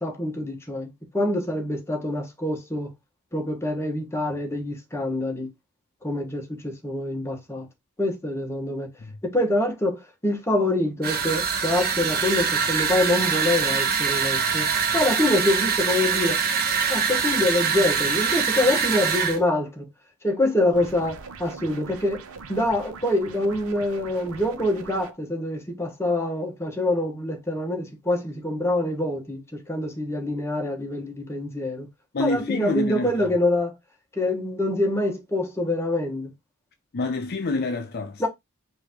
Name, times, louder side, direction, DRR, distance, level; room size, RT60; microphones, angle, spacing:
voice 1, 0.0-2.9 3.3-5.5 6.0-7.7 8.0-8.9 9.2-16.4 16.9-19.9 20.2-22.2 22.5-31.9 32.2-33.7 34.2-36.3 38.2-38.3, left 1 dB, 10° left, 1.1 m, -25 dB
sound 1, 11.0-19.4, right 6 dB, 45° right, 1.0 m, -24 dB
sound 2, 20.7-25.1, right 4 dB, 75° right, 0.7 m, -42 dB
voice 2, 32.1-33.1 36.9-38.3, left 3 dB, 45° left, 0.5 m, -27 dB
4.8 x 2.7 x 3.5 m
head